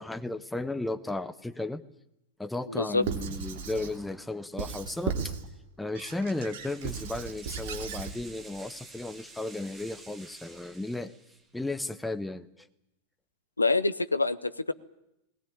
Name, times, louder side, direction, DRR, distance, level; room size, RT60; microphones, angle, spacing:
voice 1, 0.0-1.8 2.4-5.3 5.8-11.1 11.5-12.7, left 2 dB, 5° left, 11 dB, 1.1 m, -34 dB
voice 2, 2.7-3.0 13.6-14.7, left 3 dB, 80° left, 13 dB, 0.8 m, -26 dB
Squeak / Writing, 3.0-4.0 4.6-5.5 5.9-8.2, right 6 dB, 55° right, 3.0 m, -36 dB
sound 1, 6.0-11.6, right 3 dB, 10° right, 3.0 m, -51 dB
20.0 x 18.5 x 10.0 m, 0.84 s
figure-of-eight pair, 90°, 0 cm